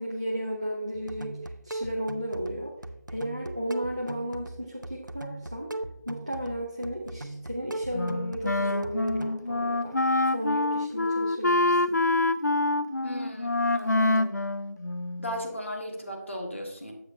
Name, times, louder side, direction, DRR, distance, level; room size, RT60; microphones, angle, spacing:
voice 1, 0.0-2.7 3.1-5.7 6.1-12.0, equal, 20° right, -1 dB, 0.6 m, -34 dB
sound 1, 0.9-9.3, right 2 dB, 90° right, 0.7 m, -39 dB
Wind instrument woodwind instrument, 7.9-15.4, left 2 dB, 65° left, 0.4 m, -26 dB
voice 2, 13.0-14.4 15.2-16.9, equal, 45° left, 1 dB, 1.5 m, -37 dB
9.8 x 7.7 x 2.6 m, 0.81 s
figure-of-eight pair, 175°, 10 cm